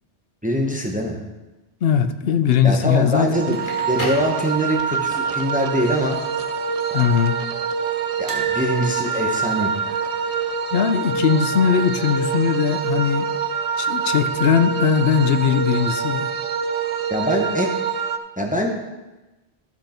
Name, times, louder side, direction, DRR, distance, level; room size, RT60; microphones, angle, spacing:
voice 1, 0.4-1.2 2.6-6.2 6.9-7.0 8.2-10.0 17.1-17.7 18.4-18.7, equal, 10° right, 1 dB, 0.9 m, -23 dB
voice 2, 1.8-3.6 6.9-7.4 10.7-13.3 13.8-16.3, left 7 dB, 65° left, 10 dB, 0.8 m, -19 dB
Crackle, 3.3-5.0, left 1 dB, 45° left, 1.7 m, -32 dB
sound 1, 3.3-18.2, right 6 dB, 50° right, 0.4 m, -25 dB
sound 2, 8.3-11.3 11.6-11.8 12.0-12.1 13.4-13.9 14.4-14.5, right 3 dB, 80° right, 1.5 m, -35 dB
12.5 x 6.1 x 4.3 m, 1.1 s
omnidirectional pair, 1.1 m